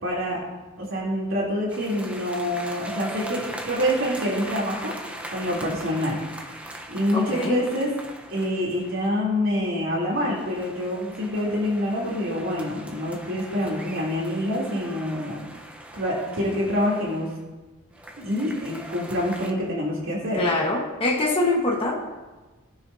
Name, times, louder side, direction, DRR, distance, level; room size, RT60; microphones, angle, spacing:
voice 1, 0.0-0.4 0.8-4.9 5.3-7.9 8.3-15.4 15.9-17.3 18.2-20.4, equal, 65° right, -6 dB, 3.2 m, -26 dB
sound 1, 1.7-9.2 9.9-17.4 17.9-19.5, right 1 dB, 5° right, 0.9 m, -40 dB
voice 2, 7.1-7.6 20.3-22.0, left 2 dB, 25° left, -2 dB, 1.4 m, -24 dB
20.5 x 9.6 x 2.8 m, 1.2 s
head